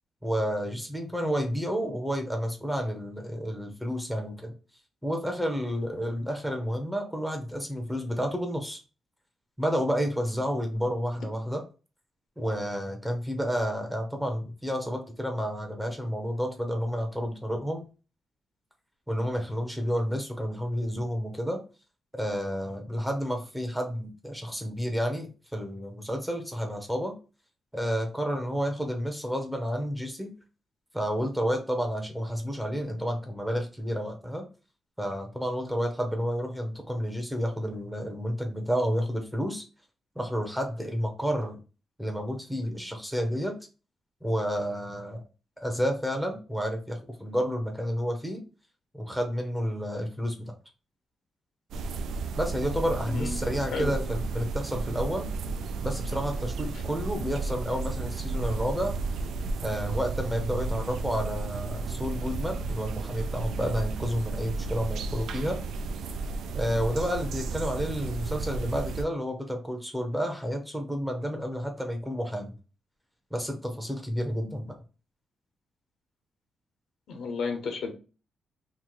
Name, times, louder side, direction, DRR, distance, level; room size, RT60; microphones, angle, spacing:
voice 1, 0.2-4.5 5.0-8.8 9.6-11.6 12.4-17.8 19.1-21.6 22.1-27.1 27.7-30.3 30.9-34.4 35.0-39.6 40.2-41.6 42.0-43.5 44.2-45.2 45.6-48.4 48.9-50.3 52.4-55.3 55.8-59.0 59.6-65.6 66.5-72.5 73.3-74.8, equal, 5° right, 3 dB, 0.6 m, -30 dB
sound 1, 51.7-69.0, right 3 dB, 90° right, 0.3 m, -33 dB
voice 2, 53.1-53.4 53.7-54.0 56.7-56.8 77.1-77.9, left 4 dB, 70° left, 4 dB, 0.9 m, -32 dB
3.0 x 2.4 x 3.8 m, 0.33 s
wide cardioid pair, 150°, 0 cm